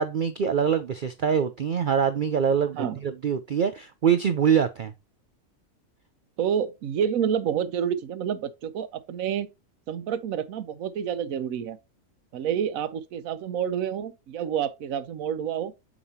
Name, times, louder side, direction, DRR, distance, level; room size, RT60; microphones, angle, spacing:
voice 1, 0.0-4.9, right 7 dB, 60° right, 0.5 m, -24 dB
voice 2, 6.4-9.5 9.9-11.8 12.3-15.7, right 8 dB, 80° right, 1.1 m, -28 dB
7.2 x 5.1 x 2.7 m
omnidirectional pair, 1.4 m